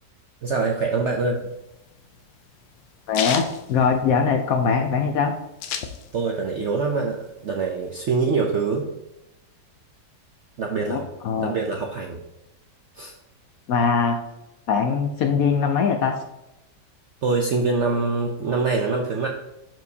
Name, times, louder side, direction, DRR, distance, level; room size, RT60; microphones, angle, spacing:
voice 1, 0.4-1.5 6.1-8.9 10.6-11.1 11.4-12.2 13.0-13.1 17.2-19.3, right 4 dB, 65° right, 2 dB, 0.7 m, -24 dB
sound 1, 1.4-4.6 4.9-5.0 5.2-6.5 6.8-7.9, left 7 dB, 85° left, 1.4 m, -32 dB
voice 2, 3.1-5.3 10.9-11.5 13.7-14.2 14.7-16.2, left 6 dB, 70° left, 5 dB, 0.9 m, -21 dB
12.0 x 4.6 x 2.7 m, 0.93 s
omnidirectional pair, 1.9 m